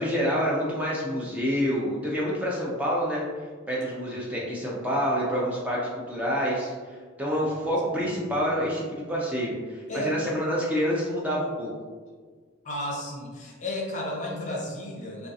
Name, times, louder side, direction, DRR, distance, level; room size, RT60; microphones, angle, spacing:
voice 1, 0.0-3.2 3.7-11.7, equal, 5° right, -5 dB, 0.4 m, -27 dB
voice 2, 9.9-10.3 12.6-15.3, equal, 35° left, -2 dB, 0.6 m, -33 dB
3.5 x 2.3 x 2.6 m, 1.5 s
head